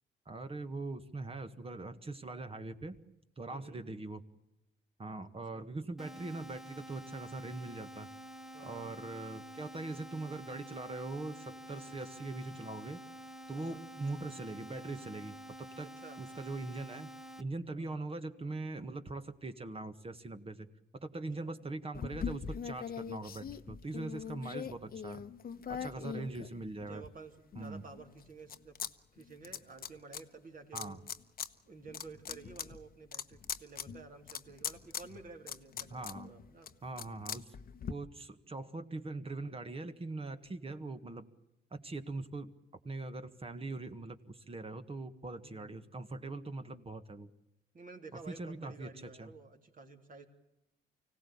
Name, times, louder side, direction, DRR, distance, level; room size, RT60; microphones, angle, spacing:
voice 1, 0.3-3.0 3.4-4.2 5.0-8.1 8.6-13.0 13.5-17.1 17.4-20.7 21.0-25.2 25.7-27.1 27.6-27.8 30.7-31.0 35.9-36.3 36.8-37.5 37.9-41.3 41.7-42.5 42.8-47.3 48.3-49.3, right 2 dB, 30° right, 9 dB, 1.7 m, -42 dB
voice 2, 3.5-3.8 5.5-5.7 8.5-9.1 11.7-12.0 13.5-13.8 16.0-16.2 17.8-18.0 21.1-21.5 25.8-26.3 26.9-28.8 29.1-31.0 31.7-36.7 45.4-45.8 47.7-50.3, right 4 dB, 45° right, 4 dB, 3.6 m, -52 dB
sound 1, 6.0-17.4, equal, ahead, 1.2 m, -49 dB
sound 2, 21.9-27.0 27.5-28.9 29.2-30.2 30.8-31.5 31.8-37.9, left 7 dB, 50° left, 1.0 m, -42 dB
25.0 x 17.0 x 8.6 m, 0.91 s
cardioid pair, 90°, 20 cm